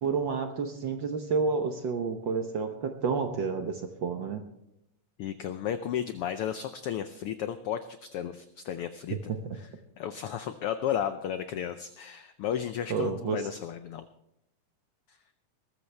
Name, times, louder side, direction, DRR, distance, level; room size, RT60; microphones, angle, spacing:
voice 1, 0.0-4.4 9.1-9.6 12.9-13.5, right 5 dB, 75° right, 6 dB, 1.0 m, -30 dB
voice 2, 5.2-9.3 9.6-9.7 10.0-14.1 15.1-15.2, left 9 dB, 90° left, 10 dB, 1.2 m, -34 dB
20.5 x 13.5 x 3.3 m, 0.82 s
omnidirectional pair, 3.3 m